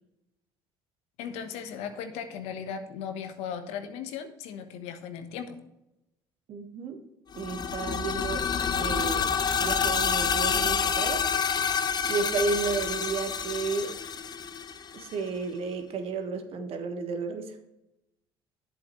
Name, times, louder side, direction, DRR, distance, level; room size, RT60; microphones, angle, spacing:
voice 1, 1.2-5.6, left 7 dB, 70° left, 8 dB, 1.1 m, -37 dB
voice 2, 6.5-7.0 7.3-8.5 8.7-9.3 9.6-11.3 12.1-13.9 14.9-17.6, right 4 dB, 55° right, 6 dB, 1.4 m, -32 dB
sound 1, 7.3-15.1, left 6 dB, 40° left, 0.8 m, -28 dB
10.5 x 7.9 x 3.1 m, 0.88 s
hypercardioid pair, 60°, 11 cm